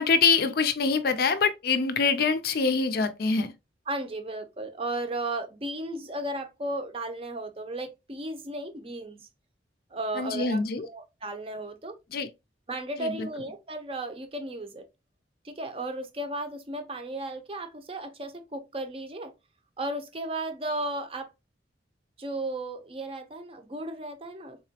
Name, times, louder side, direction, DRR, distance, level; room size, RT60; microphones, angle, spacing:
voice 1, 0.0-3.5 10.2-10.9 12.1-12.3 13.0-13.3, left 4 dB, 55° left, 0.4 m, -25 dB
voice 2, 3.9-9.3 9.9-10.6 10.9-12.0 12.7-14.8 15.4-19.3 19.8-21.3 22.2-24.6, right 1 dB, 30° right, 0.6 m, -35 dB
3.7 x 2.9 x 2.8 m
head